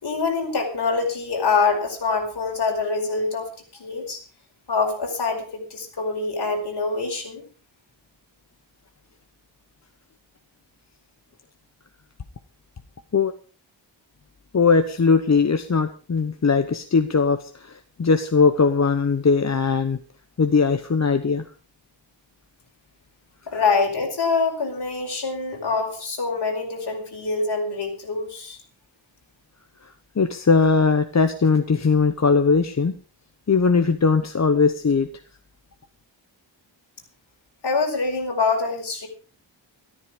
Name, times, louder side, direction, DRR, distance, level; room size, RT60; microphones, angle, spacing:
voice 1, 0.0-4.2 4.7-7.5 23.5-28.6 37.6-39.1, left 4 dB, 55° left, 2 dB, 5.1 m, -25 dB
voice 2, 14.5-20.0 20.4-21.4 30.2-33.0 33.5-35.1, left 5 dB, 35° left, 8 dB, 1.0 m, -20 dB
14.0 x 13.5 x 5.2 m, 0.37 s
wide cardioid pair, 155°, 47 cm